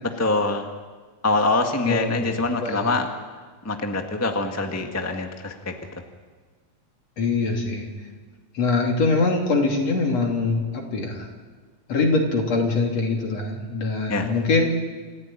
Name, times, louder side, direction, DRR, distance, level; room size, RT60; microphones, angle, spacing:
voice 1, 0.0-0.7 1.2-3.1 3.6-5.8 14.1-14.3, left 3 dB, 10° left, 4 dB, 0.9 m, -24 dB
voice 2, 1.8-2.9 7.2-7.9 8.5-11.3 11.9-14.7, left 3 dB, 60° left, 1 dB, 4.1 m, -23 dB
28.5 x 15.0 x 9.0 m, 1.4 s
omnidirectional pair, 3.4 m